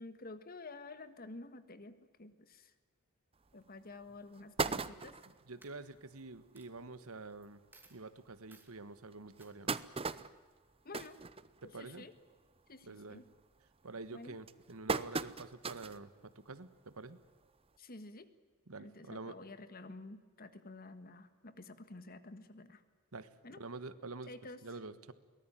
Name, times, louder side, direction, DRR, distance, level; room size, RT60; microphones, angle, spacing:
voice 1, 0.0-2.7 3.5-5.2 10.9-11.2 11.6-12.1 12.7-13.3 14.1-14.4 17.8-18.3 18.8-22.8 23.4-23.6 24.3-24.6, left 2 dB, 45° left, 11 dB, 1.6 m, -50 dB
sound 1, 3.5-3.6 4.0-4.1 4.3-5.4 6.0-6.1 6.3-6.4 6.8-6.9 7.7-7.8 8.3-8.4 9.1-12.0 12.3-12.7 13.0-13.4 14.0-16.0 16.5-16.6 17.8-17.9, right 4 dB, 25° right, 0.7 m, -38 dB
Coin (dropping), 5.0-5.3 5.6-6.2 6.6-6.7 7.4-7.5 7.7-8.0 8.5-8.7 9.4-9.5, right 3 dB, 10° right, 2.6 m, -61 dB
voice 2, 5.5-7.6 7.9-9.7 11.6-12.0 12.9-13.2 13.8-17.2 18.7-19.4 23.1-23.3 23.6-24.3 24.6-25.1, right 3 dB, 80° right, 14 dB, 1.4 m, -47 dB
23.0 x 19.0 x 9.1 m, 1.5 s
head